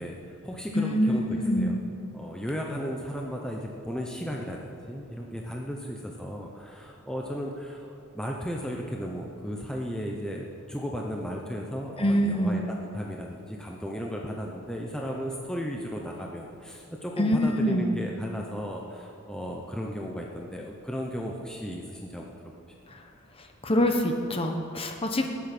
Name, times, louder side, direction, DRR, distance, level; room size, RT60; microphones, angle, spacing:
voice 1, 0.0-1.8 2.1-22.5, equal, 5° left, -1 dB, 0.8 m, -35 dB
voice 2, 0.7-1.8 12.0-12.6 17.2-17.9 23.6-25.3, equal, 25° left, 4 dB, 1.1 m, -25 dB
20.0 x 8.5 x 6.0 m, 2.6 s
head